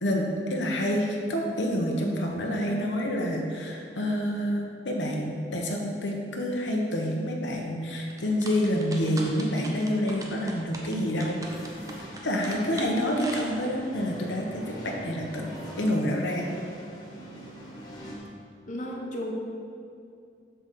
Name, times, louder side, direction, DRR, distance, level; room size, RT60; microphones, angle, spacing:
voice 1, 0.0-11.4 12.2-15.5 15.8-16.5, equal, 85° left, 0 dB, 1.0 m, -28 dB
sound 1, 8.1-13.9, right 2 dB, 20° right, 0.7 m, -41 dB
sound 2, 11.4-18.2, equal, 20° left, 1.4 m, -43 dB
voice 2, 18.7-19.3, left 1 dB, 45° left, -2 dB, 1.0 m, -34 dB
7.7 x 4.0 x 6.6 m, 2.4 s
head